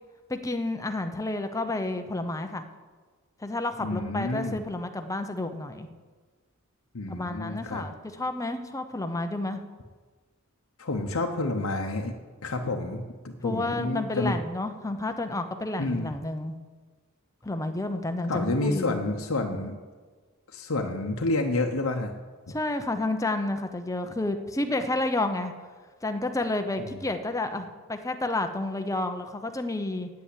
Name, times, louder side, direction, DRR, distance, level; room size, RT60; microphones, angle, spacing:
voice 1, 0.3-2.6 3.4-5.9 7.1-9.6 13.4-16.6 17.4-19.0 22.5-25.5 26.0-30.1, left 2 dB, 15° left, 7 dB, 0.8 m, -30 dB
voice 2, 3.8-4.6 6.9-7.8 10.8-12.1 12.4-14.3 15.7-16.1 18.3-19.8 20.5-22.1 26.8-27.1, left 2 dB, 85° left, 2 dB, 0.9 m, -29 dB
8.9 x 8.4 x 8.4 m, 1.4 s
head